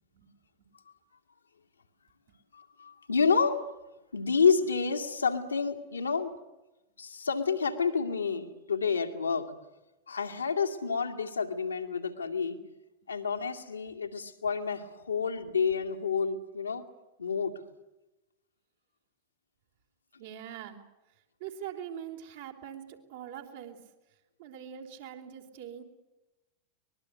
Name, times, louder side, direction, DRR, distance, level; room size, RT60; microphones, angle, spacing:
voice 1, 2.5-3.6 4.1-6.3 7.0-9.5 10.1-12.6 13.1-16.9 17.2-17.5, left 5 dB, 75° left, 4 dB, 2.3 m, -29 dB
voice 2, 20.2-20.8 21.4-23.8 24.4-25.8, right 9 dB, 55° right, 4 dB, 3.7 m, -43 dB
24.0 x 21.5 x 9.4 m, 1.0 s
figure-of-eight pair, 90°, 0 cm